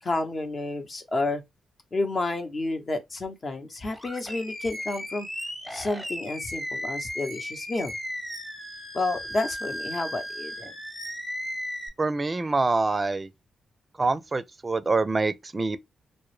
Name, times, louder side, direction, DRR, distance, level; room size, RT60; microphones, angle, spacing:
voice 1, 0.0-1.4 1.9-5.3 5.7-7.9 8.9-10.7, left 2 dB, 45° left, 0.8 m, -30 dB
Animal, 3.9-11.9, equal, 10° left, 0.9 m, -36 dB
voice 2, 12.0-13.3 14.0-15.8, right 3 dB, 30° right, 0.4 m, -25 dB
2.1 x 2.1 x 3.2 m
supercardioid pair, 55°, 0 cm